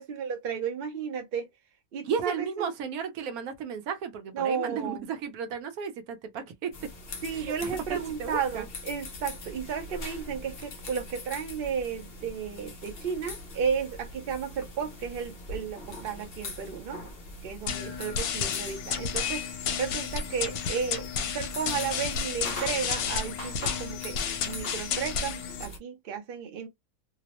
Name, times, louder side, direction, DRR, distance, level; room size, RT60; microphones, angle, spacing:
voice 1, 0.0-1.5 1.9-2.7 4.3-5.0 7.2-17.0 17.4-21.1 21.3-24.2 24.4-26.7, right 7 dB, 55° right, 0.6 m, -33 dB
voice 2, 2.0-6.9 7.3-8.6, right 6 dB, 75° right, 1.1 m, -34 dB
sound 1, 6.7-25.8, left 1 dB, 50° left, 0.7 m, -42 dB
sound 2, 17.7-25.7, left 7 dB, 75° left, 1.0 m, -32 dB
2.8 x 2.0 x 2.9 m
omnidirectional pair, 1.7 m